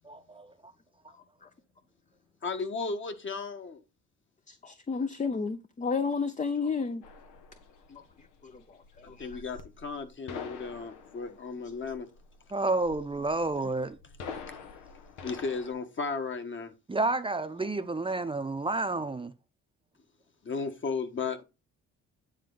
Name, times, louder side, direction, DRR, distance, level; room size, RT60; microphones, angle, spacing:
voice 1, 0.0-0.5 12.5-14.0 16.9-19.3, right 3 dB, 15° right, 0.7 m, -30 dB
voice 2, 2.4-3.8 9.0-12.1 14.5-14.6 15.2-16.7 20.4-21.4, left 4 dB, 40° left, 1.5 m, -35 dB
voice 3, 4.5-7.0 7.9-9.4, left 5 dB, 25° left, 0.6 m, -33 dB
sound 1, 7.0-15.7, left 5 dB, 90° left, 1.4 m, -46 dB
9.4 x 4.0 x 4.0 m
cardioid pair, 90°, 30 cm